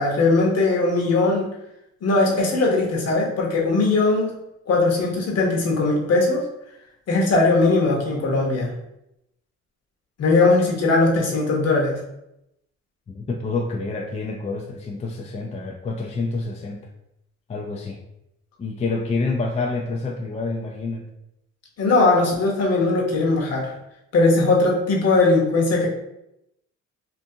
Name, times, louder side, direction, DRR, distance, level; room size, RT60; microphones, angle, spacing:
voice 1, 0.0-1.5 2.0-4.3 4.7-6.4 7.1-8.7 10.2-12.0 21.8-23.7 24.1-25.9, left 3 dB, 55° left, -1 dB, 0.9 m, -19 dB
voice 2, 13.1-16.9 17.5-18.0 18.6-21.1, left 3 dB, 25° left, 1 dB, 0.3 m, -28 dB
2.6 x 2.5 x 2.6 m, 0.84 s
cardioid pair, 90°, 30 cm